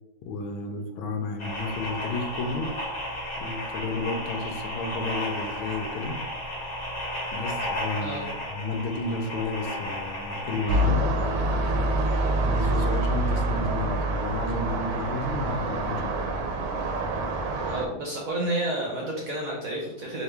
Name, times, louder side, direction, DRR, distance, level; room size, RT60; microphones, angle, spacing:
voice 1, 0.2-2.7 3.4-6.2 7.3-8.2 8.5-11.1 12.4-16.2, left 3 dB, 80° left, 5 dB, 1.4 m, -32 dB
sound 1, 1.4-10.8, left 1 dB, 35° left, 1.1 m, -33 dB
sound 2, 10.7-17.9, right 1 dB, 80° right, 1.5 m, -26 dB
voice 2, 17.7-20.2, right 1 dB, 60° right, -2 dB, 0.9 m, -30 dB
4.3 x 2.8 x 3.3 m, 0.99 s
omnidirectional pair, 2.2 m